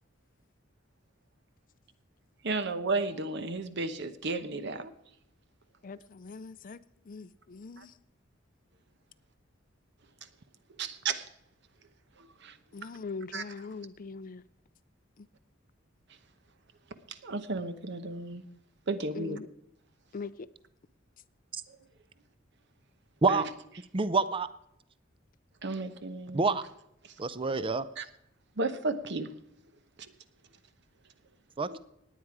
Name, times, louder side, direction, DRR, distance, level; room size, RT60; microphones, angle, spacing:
voice 1, 2.4-4.9 7.8-7.9 10.8-11.3 12.2-12.6 13.3-13.4 17.1-18.4 18.9-19.4 21.7-21.8 23.3-23.4 25.6-26.6 28.0-28.1 28.6-29.3 31.7-31.8, right 3 dB, 60° right, 1.0 m, -33 dB
voice 2, 5.8-8.0 12.7-14.4 15.2-15.3 19.1-19.5 20.1-20.5, left 4 dB, 45° left, 0.5 m, -42 dB
voice 3, 23.9-24.5 26.3-26.6 27.2-27.9 31.6-31.8, right 4 dB, 25° right, 0.5 m, -27 dB
18.5 x 9.4 x 4.8 m
head